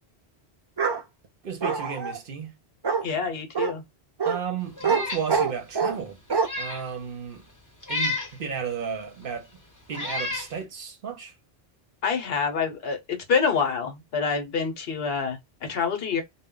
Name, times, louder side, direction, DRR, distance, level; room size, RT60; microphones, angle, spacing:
Bark, 0.8-1.0 1.6-2.2 2.8-3.0 3.5-3.7 4.2-4.4 4.8-5.0 5.3-6.0 6.3-6.5, right 5 dB, 40° right, 0.3 m, -24 dB
voice 1, 1.4-2.5 4.2-6.2 6.6-7.4 7.9-9.5 9.9-11.3, right 6 dB, 60° right, 0.8 m, -33 dB
voice 2, 3.0-3.8 12.0-16.2, left 5 dB, 65° left, 0.9 m, -27 dB
Meow, 4.8-5.3 5.7-5.8 6.3-6.9 7.8-8.3 9.2-9.3 9.9-10.5, left 3 dB, 20° left, 0.7 m, -31 dB
2.1 x 2.1 x 3.6 m
omnidirectional pair, 1.1 m